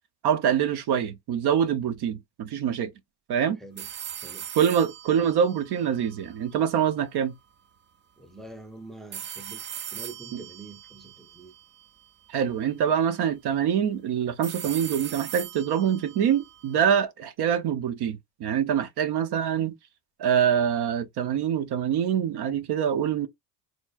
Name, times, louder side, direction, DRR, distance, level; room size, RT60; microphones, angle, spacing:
voice 1, 0.2-2.9 3.3-3.6 4.6-7.3 10.3-10.4 12.3-19.7 20.2-23.3, right 8 dB, 60° right, 0.9 m, -25 dB
sound 1, 3.8-6.8 9.1-12.3 14.4-17.0, right 9 dB, 25° right, 0.4 m, -40 dB
voice 2, 8.2-11.5, right 3 dB, ahead, 0.8 m, -45 dB
4.3 x 3.0 x 2.4 m
supercardioid pair, 90°, 46 cm